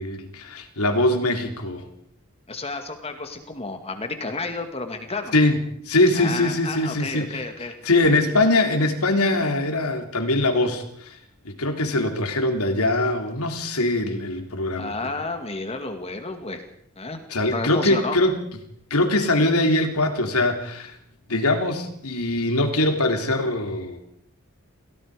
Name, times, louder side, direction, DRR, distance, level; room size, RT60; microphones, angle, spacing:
voice 1, 0.0-1.8 5.3-5.6 5.9-7.4 7.8-11.2 11.5-15.2 17.3-18.4 18.9-21.0 21.3-24.0, left 2 dB, 75° left, 5 dB, 3.5 m, -22 dB
voice 2, 2.5-5.3 6.1-7.7 14.8-16.6 17.0-17.2 17.5-18.2, left 3 dB, 30° left, 6 dB, 2.1 m, -31 dB
29.0 x 18.0 x 5.1 m, 0.67 s
head